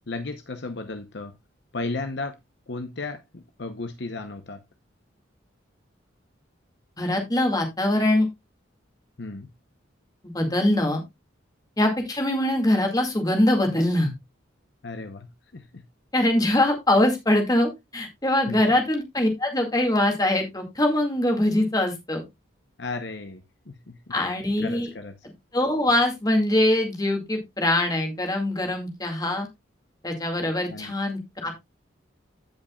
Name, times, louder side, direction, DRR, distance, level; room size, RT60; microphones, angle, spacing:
voice 1, 0.1-1.3 1.7-2.4 2.7-4.6 9.2-9.5 14.8-15.8 18.5-18.7 22.8-24.1 24.6-25.1 30.7-30.9, left 3 dB, 60° left, 0.8 m, -34 dB
voice 2, 7.0-8.3 10.2-11.0 11.8-14.1 16.1-22.2 24.1-24.9 25.5-29.5 30.0-31.5, left 1 dB, 20° left, 2.1 m, -23 dB
15.5 x 5.3 x 2.3 m
head